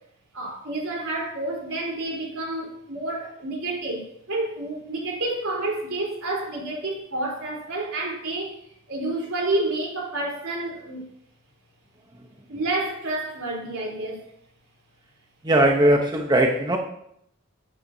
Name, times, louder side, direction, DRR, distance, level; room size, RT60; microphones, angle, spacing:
voice 1, 0.3-8.6 8.9-11.1 12.5-14.2, right 2 dB, 85° right, -2 dB, 3.8 m, -29 dB
voice 2, 15.4-16.8, right 1 dB, 20° right, 2 dB, 0.8 m, -19 dB
13.0 x 9.2 x 2.7 m, 0.73 s
head